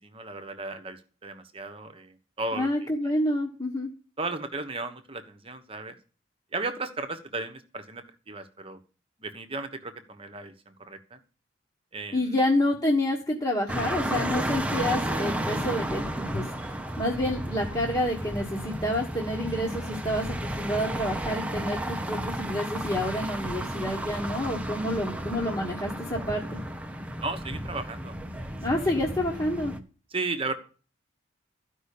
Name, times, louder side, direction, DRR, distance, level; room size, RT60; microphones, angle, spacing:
voice 1, 0.0-2.7 4.2-6.0 6.5-8.8 9.2-11.2 11.9-12.4 27.2-28.1 28.4-28.6 30.1-30.5, right 3 dB, 30° right, 7 dB, 1.2 m, -35 dB
voice 2, 2.5-3.9 12.1-16.4 17.0-26.6 28.6-29.7, left 1 dB, 20° left, -3 dB, 1.5 m, -28 dB
sound 1, 13.7-29.8, right 1 dB, 5° right, 0.8 m, -33 dB
13.5 x 5.5 x 8.5 m, 0.38 s
head